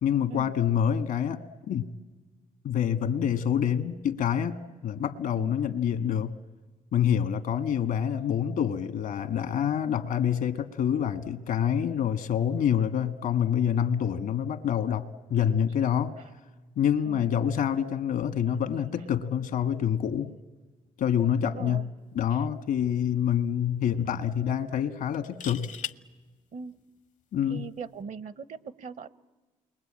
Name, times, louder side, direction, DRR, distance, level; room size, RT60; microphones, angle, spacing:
voice 1, 0.0-1.4 1.7-1.9 2.6-6.3 6.9-16.1 16.8-20.3 21.0-21.9 22.1-25.7 27.3-27.7, left 9 dB, 80° left, 1.5 m, -27 dB
voice 2, 21.4-21.9 22.3-22.4 26.5-26.8 27.5-29.1, right 5 dB, 65° right, 1.0 m, -40 dB
sound 1, 22.3-22.5 22.9-23.0 25.1-26.0 27.8-28.0, left 9 dB, 60° left, 0.8 m, -38 dB
29.0 x 22.5 x 8.8 m
supercardioid pair, 65°, 14 cm